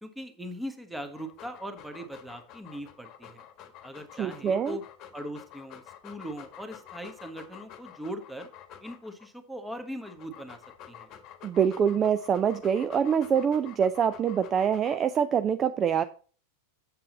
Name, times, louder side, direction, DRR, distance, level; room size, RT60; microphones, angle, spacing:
voice 1, 0.0-3.4 3.8-4.8 5.1-8.5 8.8-10.6 10.9-11.1, equal, 5° right, 7 dB, 1.3 m, -40 dB
Dog, 1.1-9.3 9.9-15.3, left 10 dB, 35° left, 1.3 m, -49 dB
voice 2, 4.2-4.8 11.4-16.0, right 7 dB, 25° right, 11 dB, 0.5 m, -25 dB
7.8 x 7.6 x 4.1 m, 0.40 s
figure-of-eight pair, 90°, 0 cm